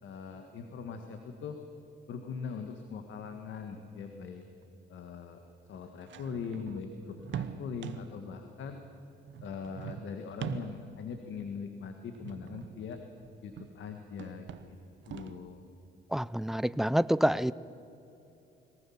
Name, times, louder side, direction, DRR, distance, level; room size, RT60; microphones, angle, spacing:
voice 1, 0.0-1.6 2.1-4.4 4.9-5.4 5.7-8.8 9.4-13.0 13.4-14.8 15.1-15.7, left 5 dB, 75° left, 5 dB, 1.8 m, -41 dB
sound 1, 4.0-4.1 4.6-4.7 5.7-8.3 9.3-11.0 12.1-13.8 14.1-15.5, right 9 dB, 70° right, 1.0 m, -43 dB
voice 2, 16.1-17.5, equal, ahead, 18 dB, 0.5 m, -27 dB
22.5 x 19.0 x 7.4 m, 2.9 s
cardioid pair, 90°, 20 cm